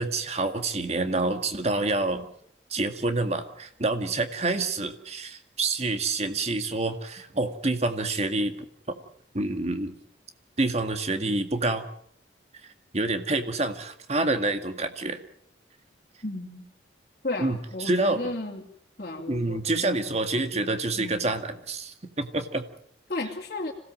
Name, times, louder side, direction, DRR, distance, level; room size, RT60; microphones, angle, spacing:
voice 1, 0.0-2.2 2.7-8.5 9.3-10.0 10.6-11.9 12.9-15.2 17.4-18.3 19.3-22.6, right 2 dB, 35° right, 7 dB, 2.0 m, -27 dB
voice 2, 16.2-16.6 17.2-18.6 19.0-19.9 20.4-20.6 21.0-21.3 23.1-23.7, left 2 dB, 45° left, -3 dB, 2.6 m, -34 dB
26.5 x 17.0 x 7.7 m, 0.69 s
head